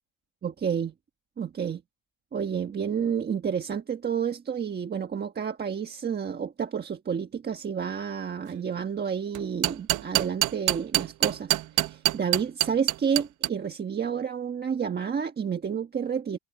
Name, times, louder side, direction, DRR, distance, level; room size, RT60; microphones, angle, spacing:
voice 1, 0.4-0.9 1.4-1.8 2.3-16.4, right 7 dB, 25° right, 1.3 m, -30 dB
sound 1, 9.3-13.5, right 15 dB, 55° right, 1.0 m, -24 dB
cardioid pair, 165°, 38 cm